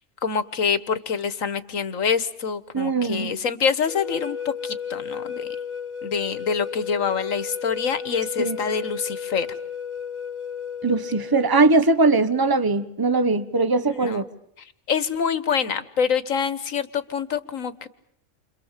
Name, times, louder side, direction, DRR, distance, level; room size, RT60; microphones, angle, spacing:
voice 1, 0.2-5.5 6.0-9.5 14.0-14.2 14.9-17.9, left 6 dB, 85° left, 13 dB, 1.7 m, -26 dB
voice 2, 2.7-3.3 8.4-8.6 10.8-14.2, right 3 dB, 20° right, 11 dB, 1.2 m, -20 dB
sound 1, 3.9-11.6, left 6 dB, 65° left, 2.1 m, -33 dB
29.5 x 26.0 x 7.4 m, 0.71 s
omnidirectional pair, 1.3 m